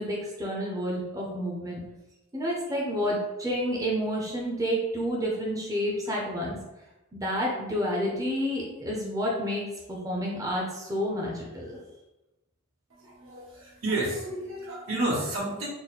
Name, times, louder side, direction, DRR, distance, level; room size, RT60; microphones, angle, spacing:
voice 1, 0.0-1.8 2.3-6.6 7.1-11.8, equal, 15° right, -3 dB, 0.6 m, -30 dB
voice 2, 12.9-15.7, right 2 dB, 70° right, -5 dB, 1.3 m, -31 dB
3.9 x 2.1 x 4.1 m, 0.98 s
head